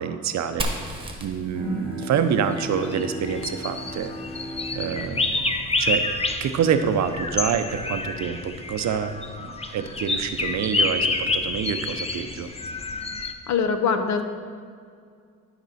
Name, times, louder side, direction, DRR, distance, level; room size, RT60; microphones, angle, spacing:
voice 1, 0.0-4.1 4.7-6.1 6.4-12.5, right 7 dB, 65° right, 9 dB, 0.7 m, -27 dB
Fire, 0.6-4.3, right 1 dB, 15° right, 1.2 m, -36 dB
Bowed string instrument, 1.5-7.0, equal, 5° left, 2.0 m, -37 dB
sound 1, 2.4-13.3, left 3 dB, 20° left, 0.6 m, -29 dB
voice 2, 13.5-14.2, left 6 dB, 65° left, 7 dB, 0.9 m, -22 dB
12.5 x 5.3 x 4.1 m, 2.2 s
cardioid pair, 90°, 30 cm